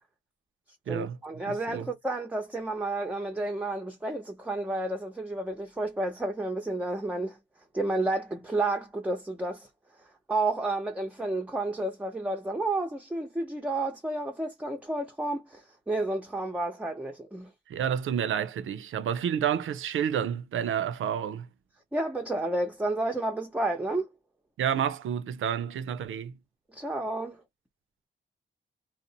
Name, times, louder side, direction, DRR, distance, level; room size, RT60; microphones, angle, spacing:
voice 1, 0.9-7.4 7.7-9.7 10.3-17.5 21.9-24.1 26.7-27.4, right 2 dB, 5° right, 0.6 m, -31 dB
voice 2, 1.5-1.9 17.7-21.5 24.6-26.4, right 9 dB, 90° right, 0.5 m, -30 dB
2.5 x 2.0 x 2.7 m
cardioid pair, 75°, 20 cm